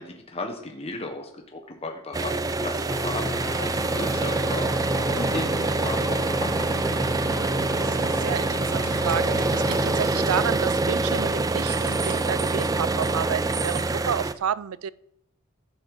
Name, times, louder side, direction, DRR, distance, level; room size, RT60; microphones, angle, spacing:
voice 1, 0.0-4.7 5.1-7.1, left 2 dB, 30° left, 3 dB, 1.2 m, -35 dB
sound 1, 2.1-14.3, right 3 dB, 15° right, 0.4 m, -25 dB
sound 2, 2.9-10.4, left 2 dB, 10° left, 1.1 m, -35 dB
voice 2, 7.8-14.9, right 8 dB, 85° right, 19 dB, 0.4 m, -30 dB
sound 3, 8.0-8.2 8.8-9.5 9.7-9.8 10.2-10.3 10.7-10.9 11.3-13.2 13.5-13.9, right 5 dB, 40° right, 1.7 m, -38 dB
14.5 x 5.5 x 5.6 m, 0.79 s
head